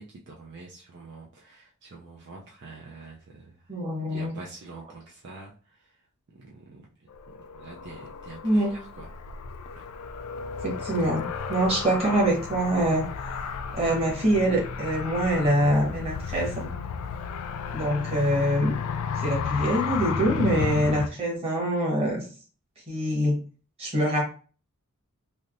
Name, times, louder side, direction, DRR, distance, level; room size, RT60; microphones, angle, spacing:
voice 1, 0.0-3.6 4.1-5.5 6.3-6.8 7.3-9.1 17.7-17.8, right 3 dB, 50° right, -2 dB, 0.5 m, -45 dB
voice 2, 3.7-4.4 8.4-8.7 10.6-13.1 13.7-16.7 17.7-18.7 19.2-22.2 22.9-23.4 23.8-24.2, right 1 dB, 25° right, -3 dB, 1.3 m, -24 dB
Car, 7.1-21.1, left 6 dB, 85° left, 0.3 m, -33 dB
3.4 x 2.7 x 2.5 m, 0.39 s
head